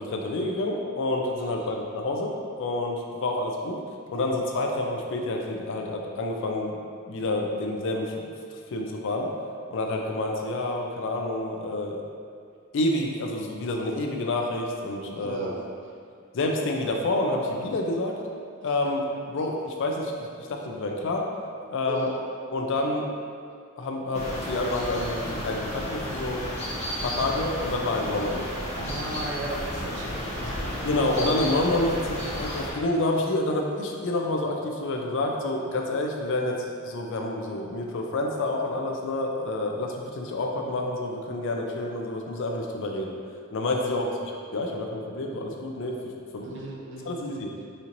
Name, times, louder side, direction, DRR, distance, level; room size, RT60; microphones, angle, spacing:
voice 1, 0.0-3.8 4.1-6.7 7.1-8.2 8.7-9.3 9.7-12.0 12.7-15.5 16.3-18.1 18.6-21.3 21.7-22.1 22.5-23.1 23.8-26.4 27.0-28.6 30.8-43.1 43.5-44.1 44.5-46.0 46.3-46.6 47.1-47.5, left 2 dB, 60° left, 1 dB, 0.4 m, -28 dB
voice 2, 1.4-1.7 15.2-15.6 18.6-18.7 21.8-22.2 28.8-31.4 43.8-44.1 46.4-47.7, right 2 dB, 60° right, -2 dB, 0.5 m, -37 dB
sound 1, 24.1-32.7, left 1 dB, 30° left, 0.8 m, -33 dB
4.2 x 2.9 x 2.6 m, 2.2 s
head